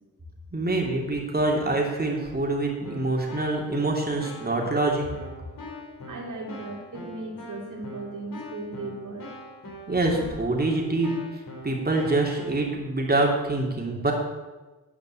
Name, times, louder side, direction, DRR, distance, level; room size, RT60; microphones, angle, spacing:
voice 1, 0.5-5.1 9.9-11.1 11.6-14.1, right 2 dB, 30° right, -1 dB, 2.9 m, -25 dB
Keyboard (musical), 2.8-12.5, left 1 dB, 75° left, 3.2 m, -43 dB
voice 2, 6.1-9.3, right 2 dB, 65° right, -1 dB, 2.8 m, -37 dB
10.5 x 5.1 x 7.7 m, 1.2 s
cardioid pair, 55°, 34 cm